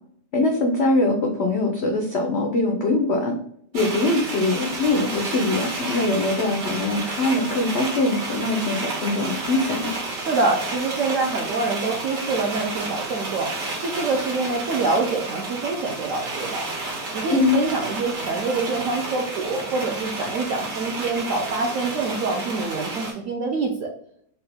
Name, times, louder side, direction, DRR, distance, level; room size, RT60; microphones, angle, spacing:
voice 1, 0.3-3.4 3.7-9.9 17.3-17.6, left 2 dB, 85° left, 1 dB, 0.5 m, -22 dB
sound 1, 3.7-23.1, right 2 dB, 90° right, 2.0 m, -31 dB
voice 2, 10.1-13.5 13.8-16.7 17.1-23.9, right 3 dB, 70° right, 0 dB, 0.7 m, -25 dB
4.2 x 2.2 x 3.3 m, 0.66 s
omnidirectional pair, 1.9 m